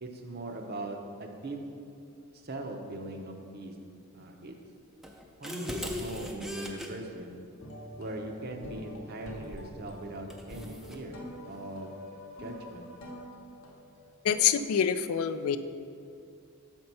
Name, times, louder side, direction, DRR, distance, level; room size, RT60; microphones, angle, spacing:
voice 1, 0.0-1.6 2.3-3.7 4.1-4.5 5.4-7.4 8.0-11.2 11.5-11.9 12.4-12.9, right 2 dB, 45° right, 3 dB, 0.6 m, -40 dB
sound 1, 5.0-6.9 9.5-9.8 10.3-11.0, left 1 dB, ahead, 0.4 m, -39 dB
sound 2, 7.6-14.4, equal, 60° left, 0.8 m, -45 dB
voice 2, 14.2-15.6, left 8 dB, 75° left, 12 dB, 0.3 m, -26 dB
6.7 x 4.4 x 5.4 m, 2.5 s
head